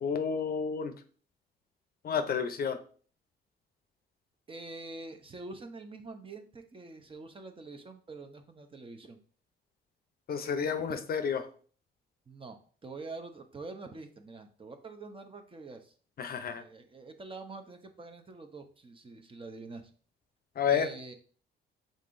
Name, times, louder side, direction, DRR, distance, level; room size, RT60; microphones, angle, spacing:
voice 1, 0.0-0.9 2.0-2.8 10.3-11.4 16.2-16.6 20.6-20.9, left 6 dB, 50° left, 9 dB, 0.6 m, -30 dB
voice 2, 4.5-9.2 10.9-11.0 12.3-15.9 16.5-19.9 20.7-21.1, right 3 dB, 25° right, 6 dB, 0.7 m, -45 dB
5.3 x 3.8 x 2.5 m, 0.43 s
cardioid pair, 90°, 20 cm